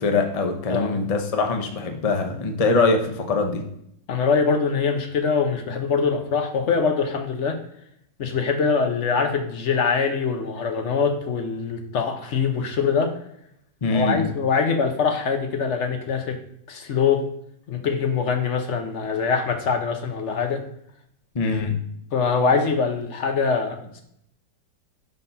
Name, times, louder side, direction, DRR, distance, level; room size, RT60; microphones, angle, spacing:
voice 1, 0.0-3.6 13.8-14.2 21.3-21.8, left 3 dB, 75° left, 4 dB, 0.3 m, -23 dB
voice 2, 0.7-1.0 4.1-7.6 8.2-13.2 13.9-16.4 16.7-17.2 17.7-20.6 22.1-24.0, left 5 dB, 55° left, 5 dB, 0.9 m, -23 dB
5.3 x 4.2 x 5.4 m, 0.73 s
omnidirectional pair, 1.9 m